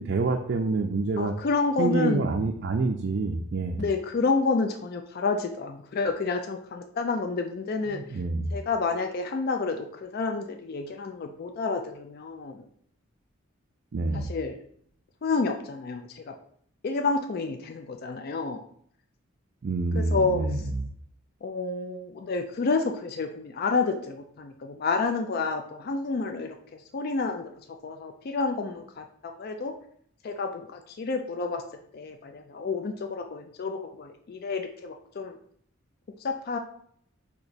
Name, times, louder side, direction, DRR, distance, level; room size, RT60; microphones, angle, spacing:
voice 1, 0.0-1.3 1.8-3.8 8.1-8.5 13.9-14.3 19.6-20.6, right 3 dB, 50° right, 2 dB, 0.4 m, -27 dB
voice 2, 1.2-2.2 3.8-8.2 8.5-12.7 14.1-14.6 15.2-16.3 16.8-18.6 19.9-20.7 21.4-29.7 30.2-31.6 31.9-35.4 36.2-36.6, left 4 dB, 45° left, 5 dB, 0.3 m, -29 dB
4.6 x 2.9 x 4.0 m, 0.63 s
head